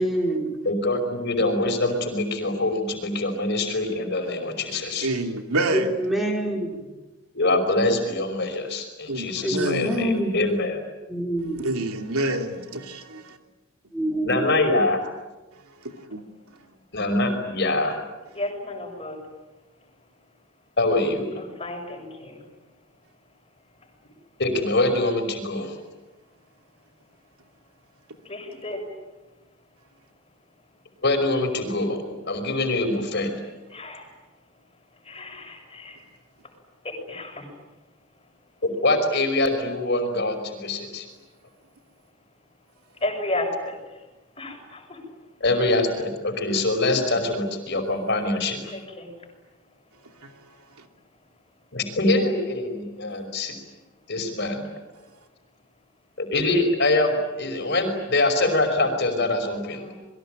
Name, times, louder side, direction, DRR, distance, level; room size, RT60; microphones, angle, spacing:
voice 1, 0.0-0.5 5.7-6.8 9.4-10.4 11.1-11.7 13.9-14.4, right 1 dB, ahead, 4.9 m, -26 dB
voice 2, 0.7-5.1 7.3-10.8 14.2-15.0 16.9-18.0 20.8-21.4 24.4-25.8 31.0-33.3 38.6-41.1 45.4-48.7 51.7-53.6 54.1-54.7 56.2-59.8, left 2 dB, 50° left, 5.5 m, -24 dB
voice 3, 5.0-5.9 9.1-10.1 11.6-13.4 15.8-16.2 46.5-46.6 50.8-50.9, right 1 dB, 85° right, 2.9 m, -28 dB
voice 4, 18.4-19.2 21.4-22.4 28.3-28.8 33.7-34.1 35.1-36.0 37.1-37.5 43.0-43.7 44.4-45.0 48.7-49.1 59.8-60.0, left 2 dB, 25° left, 7.1 m, -32 dB
28.0 x 23.0 x 9.1 m
head